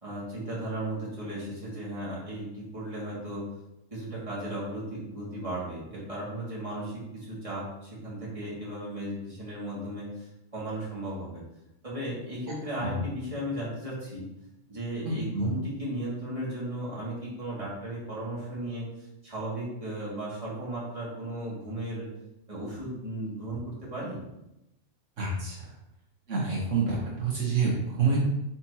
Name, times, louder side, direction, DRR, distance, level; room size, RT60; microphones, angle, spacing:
voice 1, 0.0-3.5 3.9-11.4 11.8-14.3 14.7-18.9 19.2-22.1 22.5-24.2, right 1 dB, 25° right, -7 dB, 2.4 m, -35 dB
voice 2, 15.0-15.5 25.2-25.5 26.3-28.2, right 4 dB, 70° right, -4 dB, 1.5 m, -27 dB
8.5 x 4.3 x 2.9 m, 0.88 s
omnidirectional pair, 1.3 m